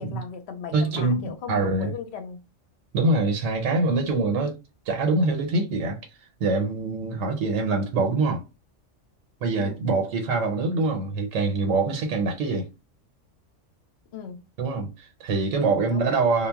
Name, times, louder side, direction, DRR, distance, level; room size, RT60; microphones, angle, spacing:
voice 1, 0.0-2.4 9.6-9.8 14.1-14.5 15.9-16.1, left 7 dB, 65° left, 0.7 m, -37 dB
voice 2, 0.7-1.9 2.9-4.6 4.9-6.0 6.4-8.4 9.4-12.7 14.6-16.5, right 3 dB, 80° right, 1.0 m, -24 dB
2.2 x 2.1 x 3.4 m
omnidirectional pair, 1.3 m